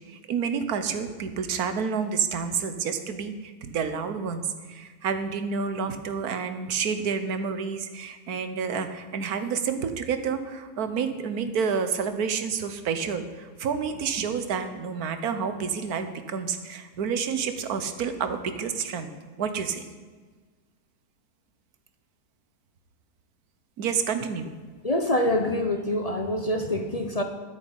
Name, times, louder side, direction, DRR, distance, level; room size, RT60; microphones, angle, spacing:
voice 1, 0.1-19.1 19.4-19.9 23.8-24.5, right 6 dB, 70° right, 9 dB, 1.5 m, -29 dB
voice 2, 24.8-27.2, left 1 dB, 35° left, 5 dB, 0.6 m, -25 dB
9.9 x 8.2 x 8.7 m, 1.4 s
omnidirectional pair, 1.7 m